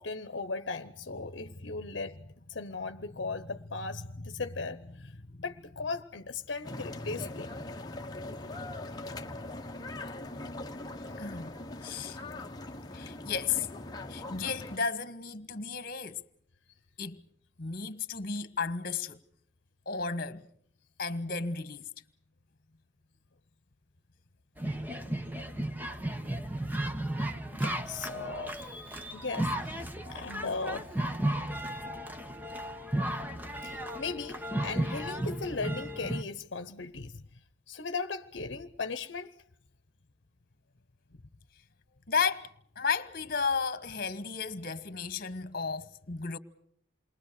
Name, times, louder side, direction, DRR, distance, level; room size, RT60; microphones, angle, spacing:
voice 1, 0.0-2.2 2.5-5.1 5.4-7.5 27.5-28.7 29.1-30.9 33.6-37.2 37.7-39.3, left 4 dB, 65° left, 0.9 m, -37 dB
sound 1, 6.6-14.8, left 2 dB, 20° left, 1.2 m, -41 dB
voice 2, 11.2-11.5 11.8-12.2 12.9-13.7 14.1-16.2 17.0-17.2 17.6-19.2 19.8-20.5 21.0-21.8 42.1-42.5 42.8-46.4, left 5 dB, 50° left, 1.4 m, -33 dB
sound 2, 24.6-36.2, right 1 dB, 10° right, 1.0 m, -34 dB
28.5 x 22.5 x 6.6 m
head